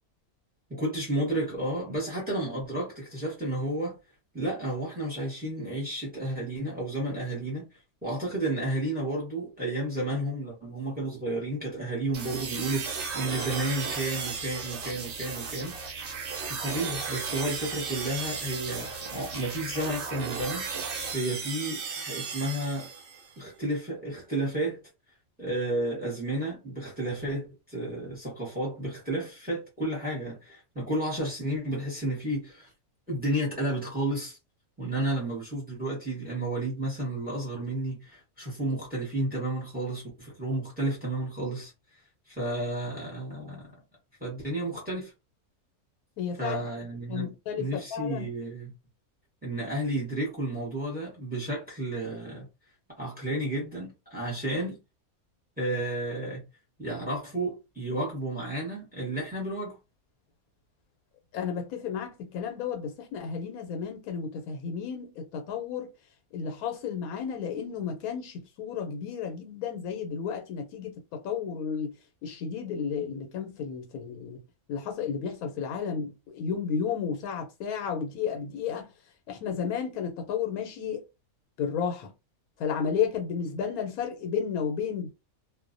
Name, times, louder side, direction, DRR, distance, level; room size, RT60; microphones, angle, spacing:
voice 1, 0.7-4.0 4.3-7.7 8.0-16.1 16.5-20.7 21.1-22.9 23.4-24.8 25.4-32.7 33.1-34.4 34.8-41.7 42.3-43.7 44.2-45.1 46.4-47.3 47.6-48.7 49.4-52.4 53.0-54.8 55.6-56.4 56.8-59.8, right 1 dB, 10° right, 0.8 m, -32 dB
sound 1, 12.1-23.3, right 5 dB, 55° right, 0.6 m, -35 dB
voice 2, 46.2-46.7 47.1-48.3 61.3-65.9 66.3-71.9 72.2-74.4 74.7-78.9 79.3-81.0 81.6-82.1 82.6-85.1, left 7 dB, 85° left, 1.0 m, -32 dB
2.4 x 2.0 x 2.5 m
omnidirectional pair, 1.5 m